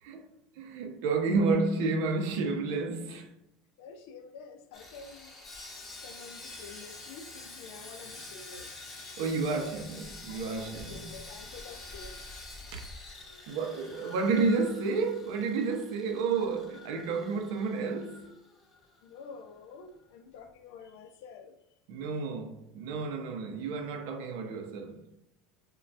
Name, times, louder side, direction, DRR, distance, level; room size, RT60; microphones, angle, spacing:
voice 1, 0.6-3.3 9.2-11.1 12.7-12.8 13.5-18.4 21.9-25.1, right 4 dB, 65° right, 0.5 m, -31 dB
voice 2, 3.8-5.3 6.0-8.8 10.3-12.2 19.0-21.5, left 5 dB, 70° left, 0.4 m, -48 dB
Sawing, 4.7-19.0 19.2-19.4 19.9-20.0, left 2 dB, 20° left, 0.6 m, -47 dB
3.1 x 2.2 x 2.6 m
cardioid pair, 165°, 0 cm